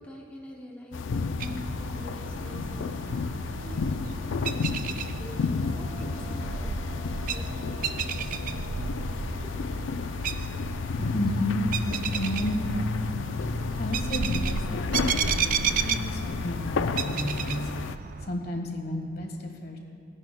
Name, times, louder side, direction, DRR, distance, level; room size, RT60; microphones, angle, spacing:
voice 1, 0.0-8.9 9.2-9.9, equal, 10° left, -3 dB, 0.7 m, -46 dB
sound 1, 0.9-18.0, left 4 dB, 85° left, 0.4 m, -32 dB
voice 2, 1.2-1.7 3.4-4.0 5.9-6.4 8.2-8.9 10.9-12.8 13.2-19.8, equal, 55° left, 0 dB, 1.5 m, -33 dB
sound 2, 1.4-18.3, right 6 dB, 45° right, 0.3 m, -34 dB
Bell, 5.6-10.7, equal, 60° right, 1.0 m, -48 dB
18.0 x 9.8 x 2.2 m, 2.3 s
head